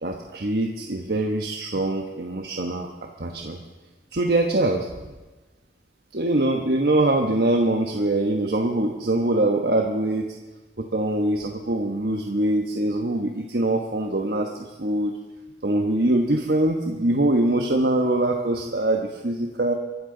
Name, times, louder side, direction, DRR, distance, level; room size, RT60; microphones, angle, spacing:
voice 1, 0.0-2.9 3.2-3.6 4.1-4.9 6.1-10.3 10.8-14.5 14.8-15.1 15.6-19.7, right 1 dB, 60° right, 2 dB, 1.2 m, -23 dB
23.5 x 13.0 x 3.9 m, 1.2 s
head